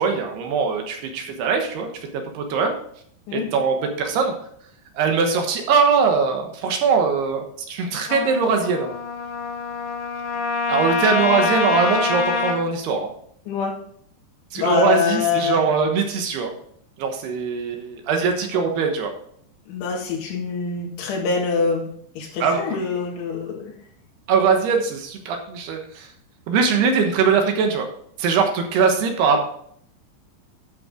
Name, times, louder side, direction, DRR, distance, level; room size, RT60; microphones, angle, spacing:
voice 1, 0.0-1.9 2.3-2.8 3.3-4.3 4.9-8.9 10.7-13.1 14.5-16.5 17.0-19.1 22.4-22.6 24.3-26.1 26.5-27.9 28.2-29.4, right 5 dB, 70° right, 4 dB, 3.0 m, -21 dB
Trumpet, 8.1-12.6, left 4 dB, 60° left, 2.5 m, -25 dB
voice 2, 13.5-13.8 14.6-15.6 18.5-18.6 19.7-21.9 22.2-23.7, left 5 dB, 90° left, -1 dB, 4.5 m, -24 dB
11.0 x 6.9 x 3.8 m, 0.63 s
omnidirectional pair, 5.3 m